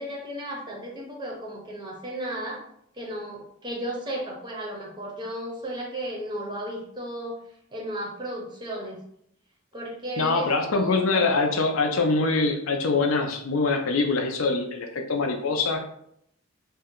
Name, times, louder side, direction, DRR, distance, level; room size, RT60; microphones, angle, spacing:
voice 1, 0.0-2.6 2.9-7.4 7.7-9.0 9.7-11.5, equal, 20° right, -1 dB, 0.6 m, -34 dB
voice 2, 10.2-15.8, left 3 dB, 70° left, 4 dB, 0.5 m, -24 dB
2.6 x 2.1 x 3.6 m, 0.72 s
head